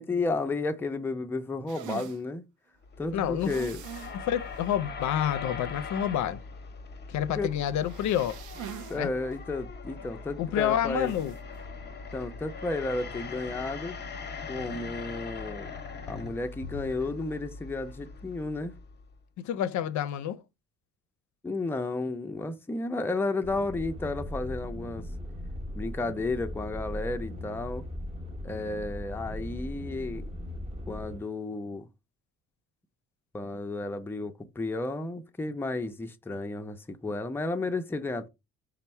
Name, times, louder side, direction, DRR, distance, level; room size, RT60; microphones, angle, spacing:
voice 1, 0.0-2.4 3.0-3.8 7.3-7.5 8.9-11.1 12.1-14.0 14.5-15.7 16.1-18.7 21.4-25.1 25.7-27.8 28.4-30.3 30.9-31.9 33.3-38.3, left 2 dB, 5° left, 0.4 m, -32 dB
sound 1, 1.7-2.2 3.4-4.2 4.5-4.6 5.0-5.1 7.8-9.0 9.3-9.4 11.0-11.4, right 11 dB, 80° right, 0.5 m, -42 dB
sound 2, 2.8-19.2, left 4 dB, 35° left, 0.7 m, -41 dB
voice 2, 3.1-3.5 4.1-6.4 7.1-8.4 9.0-9.1 10.4-11.3 19.4-20.4, left 10 dB, 70° left, 0.5 m, -28 dB
sound 3, 23.4-31.2, left 1 dB, 20° right, 0.8 m, -38 dB
4.4 x 2.0 x 4.2 m
cardioid pair, 90°, 30 cm